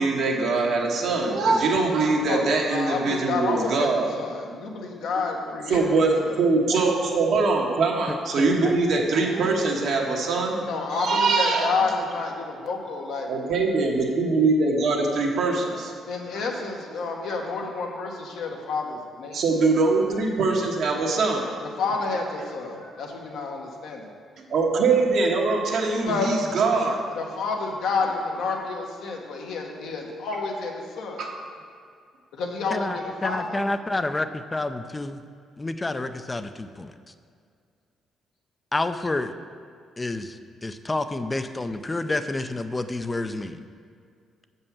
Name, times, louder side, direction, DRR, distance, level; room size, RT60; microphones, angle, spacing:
voice 1, 0.0-4.2 5.7-10.6 11.0-11.7 13.3-16.0 17.2-17.3 19.3-21.5 22.8-22.9 24.5-27.0 29.8-30.1 31.2-31.3, right 3 dB, 70° right, 0 dB, 1.4 m, -23 dB
voice 2, 2.7-3.9 4.2-5.9 6.2-6.4 10.6-13.6 16.1-19.4 21.8-24.1 26.0-26.3 27.1-31.2 32.3-33.6, left 4 dB, 80° left, 0 dB, 1.3 m, -29 dB
voice 3, 8.1-9.0 32.7-35.2 35.6-36.9 38.7-39.3 40.0-43.6, left 2 dB, 20° left, 10 dB, 0.5 m, -29 dB
6.9 x 5.4 x 7.2 m, 2.2 s
cardioid pair, 90°, 0 cm